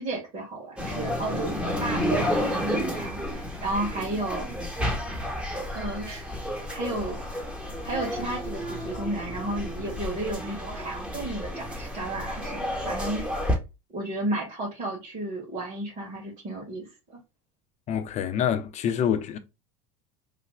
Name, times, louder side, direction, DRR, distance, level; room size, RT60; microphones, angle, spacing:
voice 1, 0.0-4.5 5.7-6.3 6.7-7.2 7.8-13.2 13.9-17.2, right 1 dB, 45° right, 1.8 m, -33 dB
sound 1, 0.8-13.5, equal, 5° right, 1.0 m, -31 dB
voice 2, 17.9-19.4, left 9 dB, 40° left, 0.6 m, -26 dB
3.3 x 2.2 x 3.4 m
hypercardioid pair, 90°, 18 cm